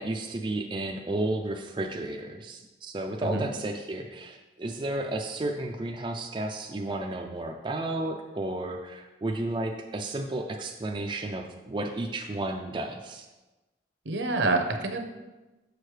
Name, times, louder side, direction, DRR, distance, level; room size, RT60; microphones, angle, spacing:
voice 1, 0.0-13.3, right 2 dB, 25° right, 2 dB, 0.4 m, -32 dB
voice 2, 14.1-15.0, right 2 dB, 75° right, 4 dB, 0.8 m, -27 dB
6.7 x 6.4 x 3.2 m, 1.1 s
head